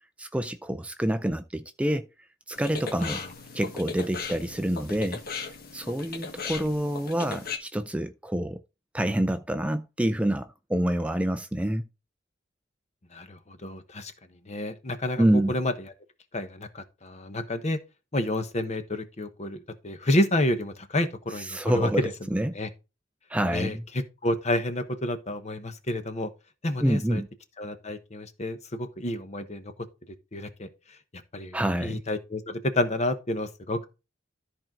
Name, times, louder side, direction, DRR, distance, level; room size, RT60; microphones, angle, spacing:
voice 1, 0.2-2.1 2.5-3.2 3.5-5.2 5.7-8.6 8.9-11.9 15.2-15.5 21.4-22.5 23.3-23.8 26.8-27.3 31.5-32.0, right 1 dB, 5° right, 0.4 m, -27 dB
sound 1, 2.5-7.6, left 5 dB, 55° left, 1.5 m, -37 dB
voice 2, 13.1-14.1 14.5-15.7 16.3-17.8 18.1-22.1 22.5-22.7 23.5-26.3 26.6-27.2 27.6-29.7 30.3-30.7 31.3-33.9, left 1 dB, 40° left, 1.1 m, -29 dB
13.5 x 4.5 x 3.8 m
head